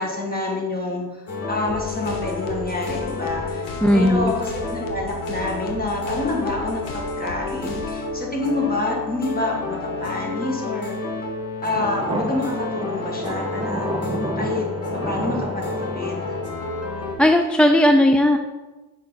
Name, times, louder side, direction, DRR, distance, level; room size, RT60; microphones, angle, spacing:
voice 1, 0.0-10.9 11.6-14.7 15.1-16.4, left 2 dB, 25° left, -1 dB, 2.0 m, -28 dB
sound 1, 1.3-17.1, left 2 dB, 45° left, 1.7 m, -30 dB
sound 2, 1.7-8.1, left 3 dB, 75° left, 1.2 m, -38 dB
voice 2, 3.8-4.3 17.2-18.4, left 1 dB, 5° left, 5 dB, 0.3 m, -16 dB
sound 3, 11.7-17.1, right 2 dB, 15° right, 1.3 m, -30 dB
6.4 x 5.2 x 4.0 m, 1.2 s
cardioid pair, 85°, 33 cm